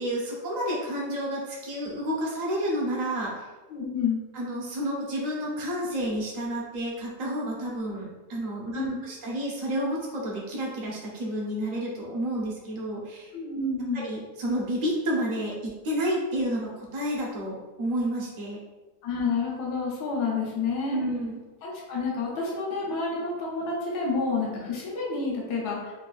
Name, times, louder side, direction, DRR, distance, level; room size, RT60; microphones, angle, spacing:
voice 1, 0.0-3.4 4.3-13.3 13.9-18.6 20.8-21.4, equal, 80° right, -3 dB, 0.3 m, -30 dB
voice 2, 3.7-4.2 8.7-9.0 13.3-14.0 19.0-21.0 21.6-25.9, left 4 dB, 80° left, -3 dB, 1.3 m, -29 dB
3.9 x 2.4 x 2.3 m, 1.1 s
omnidirectional pair, 1.7 m